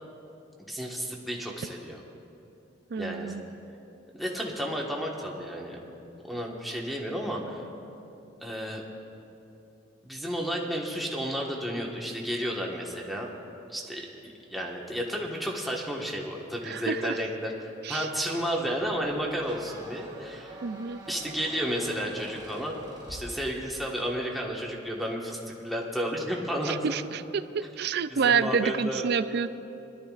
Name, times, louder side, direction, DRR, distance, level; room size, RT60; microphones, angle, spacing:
voice 1, 0.6-2.0 3.0-3.3 4.1-5.8 6.3-7.6 8.4-8.8 10.0-13.3 13.7-20.6 21.1-22.8 23.1-26.8 28.1-29.1, equal, ahead, -3 dB, 1.4 m, -32 dB
voice 2, 2.9-3.4 16.6-17.1 17.8-18.1 20.6-21.0 26.7-27.0 27.3-29.5, right 6 dB, 60° right, 13 dB, 0.4 m, -28 dB
Squeak, 18.5-24.0, right 1 dB, 25° right, 2.3 m, -46 dB
23.0 x 12.5 x 2.5 m, 2.8 s
head